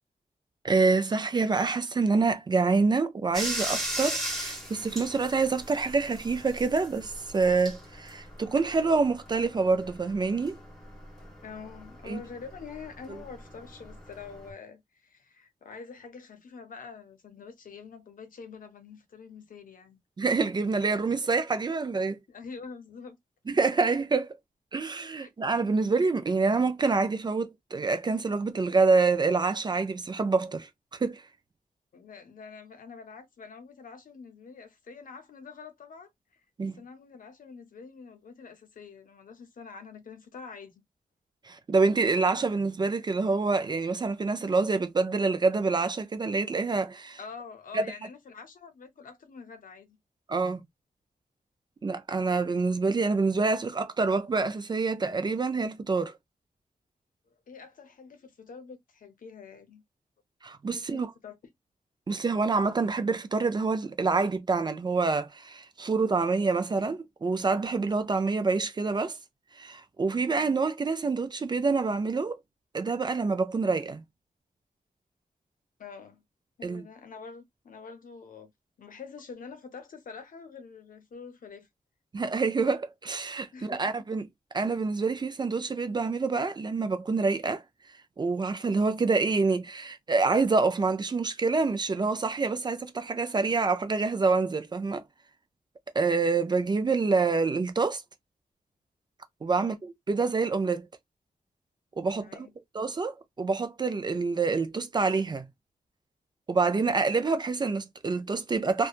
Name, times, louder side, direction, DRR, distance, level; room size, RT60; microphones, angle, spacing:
voice 1, 0.6-10.6 12.1-12.2 20.2-22.2 23.5-24.3 24.7-31.2 36.6-36.8 41.4-47.2 47.7-47.8 50.3-50.6 51.8-56.1 60.4-61.1 62.1-69.2 69.6-72.4 72.7-74.0 76.6-76.8 82.1-84.3 84.5-87.6 88.2-95.0 96.0-98.0 99.4-100.9 102.0-102.5 102.7-105.5 106.5-108.9, right 4 dB, 30° right, 0.3 m, -27 dB
Bathtub (filling or washing), 3.3-14.5, right 1 dB, ahead, 1.3 m, -39 dB
voice 2, 11.4-20.0 22.3-23.2 25.2-25.3 31.9-40.8 47.2-50.0 57.5-59.8 60.7-61.4 70.2-70.5 75.8-76.2 76.6-78.5 78.8-81.7 83.5-83.9 99.6-99.8 102.2-102.5, left 5 dB, 65° left, 0.7 m, -46 dB
2.8 x 2.2 x 2.4 m
wide cardioid pair, 165°, 15 cm